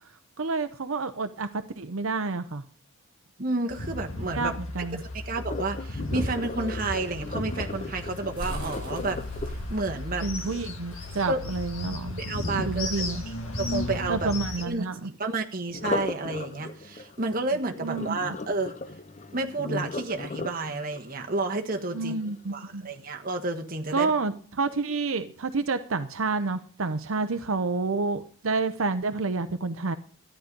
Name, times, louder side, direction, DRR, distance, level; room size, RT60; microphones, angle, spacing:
voice 1, 0.4-2.6 4.3-5.0 10.2-12.2 12.6-13.2 14.1-15.1 17.8-18.2 21.9-22.9 23.9-30.0, right 3 dB, 75° right, 9 dB, 0.7 m, -29 dB
voice 2, 3.4-4.6 5.0-9.2 9.7-10.3 11.3-11.4 12.2-13.1 13.5-14.3 14.6-18.7 19.3-22.1 22.5-24.1, right 2 dB, 40° right, 4 dB, 1.3 m, -31 dB
sound 1, 3.7-14.6, left 2 dB, 75° left, 1.7 m, -35 dB
Sink (filling or washing), 5.4-11.3 15.7-22.7 23.2-23.6 24.1-24.2, left 2 dB, 35° left, 0.7 m, -37 dB
sound 2, 7.5-12.9, right 1 dB, 25° right, 5.6 m, -42 dB
13.0 x 10.0 x 5.3 m, 0.43 s
head